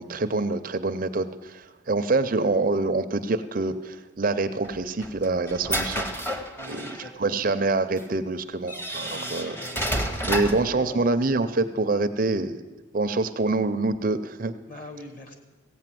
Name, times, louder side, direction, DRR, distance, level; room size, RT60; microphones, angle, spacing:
voice 1, 0.0-6.1 6.7-9.5 10.3-12.6 12.9-14.5, right 3 dB, 45° right, 10 dB, 0.5 m, -26 dB
sound 1, 4.6-7.1 8.0-8.1 8.7-10.7, right 1 dB, 10° left, 0.8 m, -30 dB
voice 2, 6.6-7.5 9.1-11.1 14.7-15.3, left 1 dB, 45° left, 3 dB, 1.8 m, -43 dB
16.0 x 8.3 x 7.6 m, 1.2 s
head